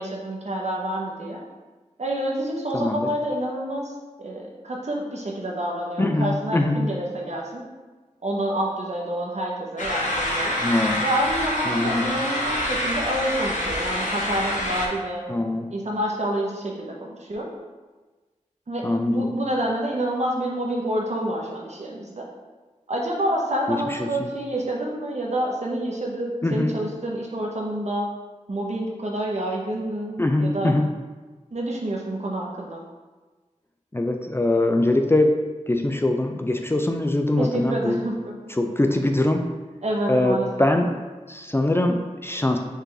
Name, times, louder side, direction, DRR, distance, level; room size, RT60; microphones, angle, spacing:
voice 1, 0.0-1.4 2.0-3.9 4.2-7.7 8.2-10.6 11.0-15.2 15.7-17.5 18.7-22.3 22.9-28.1 28.5-30.7 31.5-32.8 37.4-38.1 38.5-38.7 39.8-40.7, right 1 dB, 60° right, -1 dB, 0.9 m, -28 dB
voice 2, 2.7-3.1 6.0-6.8 10.6-11.0 11.7-12.1 15.3-15.7 18.8-19.3 23.7-24.1 26.4-26.8 30.2-30.9 33.9-35.4 35.7-38.0 38.6-39.4 40.1-40.9 41.3-42.6, left 1 dB, 20° left, 4 dB, 0.4 m, -22 dB
sound 1, 9.8-14.9, left 1 dB, 75° left, 0.9 m, -26 dB
5.3 x 2.5 x 3.9 m, 1.3 s
wide cardioid pair, 55°, 13 cm